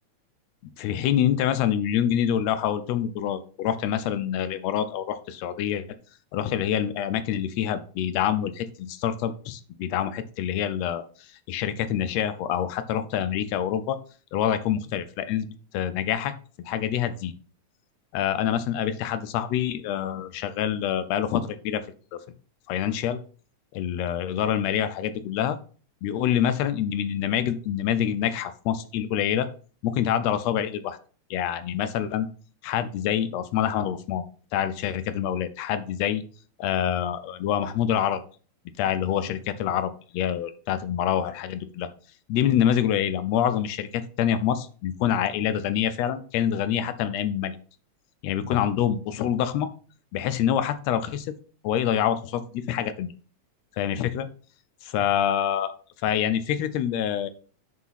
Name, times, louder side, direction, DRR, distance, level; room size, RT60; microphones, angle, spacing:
voice 1, 0.6-5.8 6.3-11.1 11.5-14.0 14.3-15.5 15.7-16.3 16.6-17.3 18.1-21.8 22.1-22.2 22.7-23.2 23.7-25.6 26.0-29.5 29.8-31.0 31.3-32.3 32.6-34.2 34.5-36.2 36.6-38.2 38.8-41.9 42.3-47.6 48.2-49.7 50.1-51.3 51.6-53.1 53.8-54.3 54.8-55.7 56.0-57.3, left 10 dB, 80° left, 12 dB, 1.6 m, -26 dB
6.2 x 4.9 x 5.6 m, 0.40 s
omnidirectional pair, 3.4 m